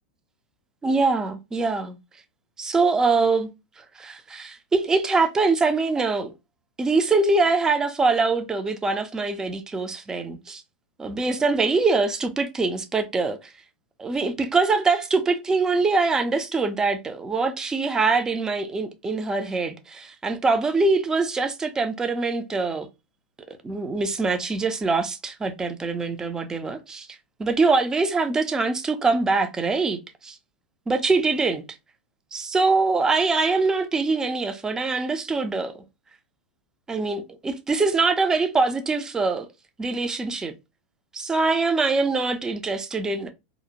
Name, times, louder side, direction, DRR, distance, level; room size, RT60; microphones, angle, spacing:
voice 1, 0.8-2.0 2.6-6.3 6.8-10.6 11.0-13.4 14.0-22.9 23.5-27.1 27.4-30.4 30.9-31.6 32.3-35.8 36.9-39.5 39.8-40.5 41.1-43.3, right 3 dB, 10° right, 0.3 m, -23 dB
2.4 x 2.0 x 2.8 m
supercardioid pair, 150°, 6 cm